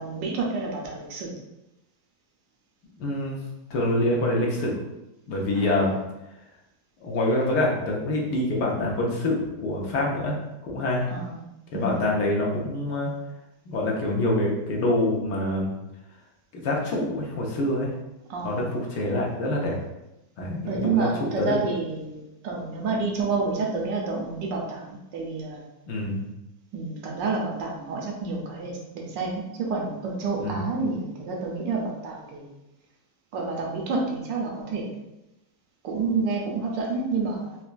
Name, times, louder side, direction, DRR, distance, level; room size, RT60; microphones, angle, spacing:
voice 1, 0.0-1.3 5.6-5.7 11.1-11.4 11.7-12.1 18.3-18.7 20.6-25.6 26.7-32.5 33.3-34.9 35.8-37.6, right 4 dB, 85° right, 0 dB, 1.4 m, -29 dB
voice 2, 3.0-3.4 3.7-4.8 5.3-6.0 7.0-11.1 11.7-13.1 13.7-15.7 16.5-17.9 18.4-19.8 20.4-21.5 25.9-26.2 30.3-30.7, left 1 dB, 75° left, -2 dB, 1.3 m, -26 dB
4.3 x 2.2 x 2.5 m, 0.94 s
omnidirectional pair, 1.9 m